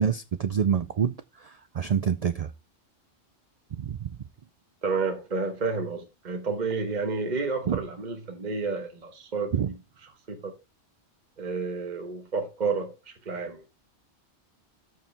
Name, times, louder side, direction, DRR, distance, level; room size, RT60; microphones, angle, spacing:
voice 1, 0.0-2.5 3.7-4.2 7.7-7.8 9.5-9.7, right 7 dB, 60° right, 0.4 m, -27 dB
voice 2, 4.8-9.7 10.3-10.5 11.4-13.6, right 4 dB, 40° right, 1.4 m, -30 dB
13.0 x 4.7 x 3.3 m
omnidirectional pair, 1.1 m